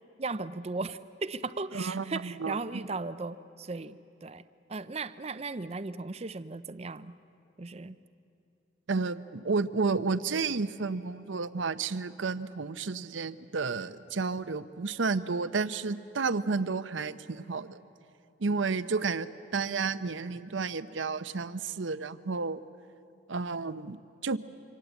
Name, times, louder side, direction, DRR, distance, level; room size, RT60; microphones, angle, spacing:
voice 1, 0.2-4.4 4.7-7.1 7.6-8.0, right 3 dB, 35° right, 13 dB, 0.5 m, -37 dB
voice 2, 1.7-2.6 8.9-17.8 18.4-22.6 23.3-24.4, right 4 dB, 80° right, 13 dB, 0.7 m, -31 dB
26.5 x 25.0 x 8.2 m, 2.7 s
head